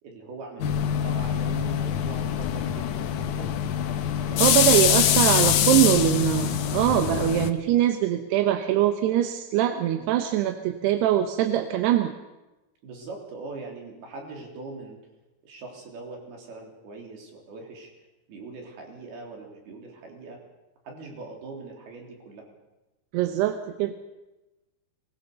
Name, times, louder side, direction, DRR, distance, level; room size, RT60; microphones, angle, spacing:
voice 1, 0.0-3.5 4.2-5.0 9.9-10.1 12.8-15.0 15.4-17.9 18.3-20.4 20.9-22.5, right 3 dB, 70° right, 1 dB, 5.5 m, -41 dB
sound 1, 0.6-7.5, left 9 dB, 70° left, 2.0 m, -24 dB
voice 2, 4.4-12.1 23.1-23.9, right 12 dB, 90° right, 7 dB, 3.1 m, -23 dB
22.5 x 20.0 x 6.8 m, 1.0 s
omnidirectional pair, 4.6 m